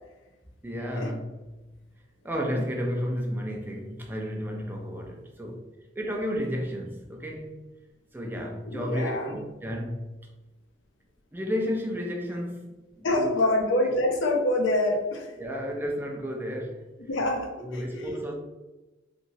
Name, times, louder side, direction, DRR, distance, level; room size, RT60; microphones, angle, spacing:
voice 1, 0.6-1.2 2.2-5.6 5.9-7.6 8.1-10.3 11.3-12.6 13.0-13.6 13.8-13.9 15.4-16.8 17.6-18.3, equal, 10° right, 1 dB, 0.4 m, -32 dB
voice 2, 8.6-9.4 13.0-15.3 17.1-18.2, left 1 dB, 85° left, 3 dB, 0.6 m, -26 dB
2.9 x 2.7 x 2.7 m, 1.1 s
head